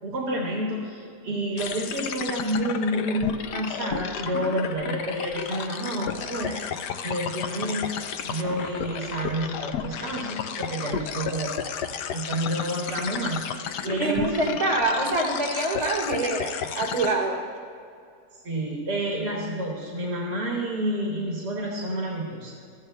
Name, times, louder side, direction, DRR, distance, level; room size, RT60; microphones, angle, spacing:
voice 1, 0.0-7.9 8.2-11.5 12.1-13.5 13.8-14.6 18.4-22.6, right 1 dB, 80° right, -3 dB, 2.2 m, -29 dB
sound 1, 1.6-17.1, left 7 dB, 85° left, 1.2 m, -33 dB
voice 2, 14.0-17.4, right 2 dB, 55° right, -5 dB, 3.1 m, -25 dB
21.5 x 14.0 x 2.2 m, 2.4 s
omnidirectional pair, 1.8 m